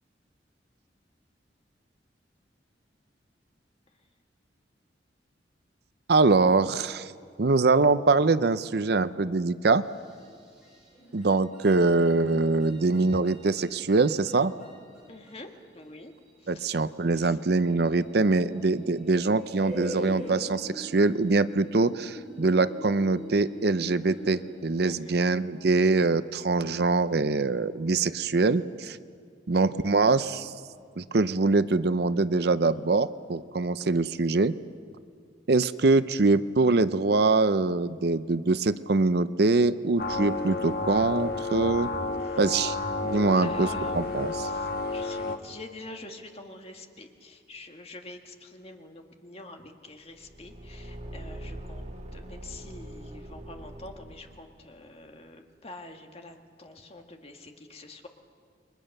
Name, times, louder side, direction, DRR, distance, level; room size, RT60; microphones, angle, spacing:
voice 1, 6.1-7.1 7.4-9.8 11.1-14.5 16.5-29.0 29.5-30.5 31.0-34.6 35.5-41.9 42.4-42.8 43.0-43.7 43.9-44.3, right 3 dB, 60° right, 14 dB, 0.6 m, -23 dB
sound 1, 9.8-24.7, equal, 5° right, 7.3 m, -44 dB
voice 2, 15.1-16.1 16.4-16.8 17.1-17.4 24.8-25.2 42.2-42.4 43.1-58.1, left 2 dB, 35° left, 4 dB, 1.8 m, -46 dB
sound 2, 40.0-45.4, left 3 dB, 55° left, 1.5 m, -31 dB
Car / Engine, 50.1-54.7, right 1 dB, 35° right, 1.8 m, -42 dB
29.5 x 23.0 x 6.6 m, 2.3 s
head